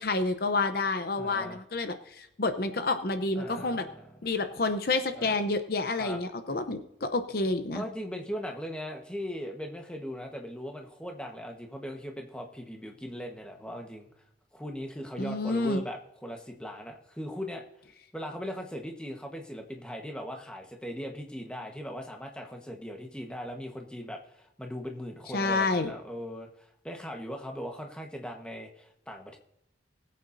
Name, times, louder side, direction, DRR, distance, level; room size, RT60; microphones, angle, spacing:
voice 1, 0.0-3.8 4.2-7.8 15.2-15.8 25.3-25.9, left 3 dB, 55° left, 8 dB, 0.7 m, -29 dB
voice 2, 1.2-1.6 3.3-4.2 5.1-5.4 6.0-6.2 7.7-14.1 14.5-17.7 18.1-29.4, equal, 5° left, 2 dB, 1.2 m, -39 dB
20.5 x 8.5 x 2.7 m, 0.82 s
head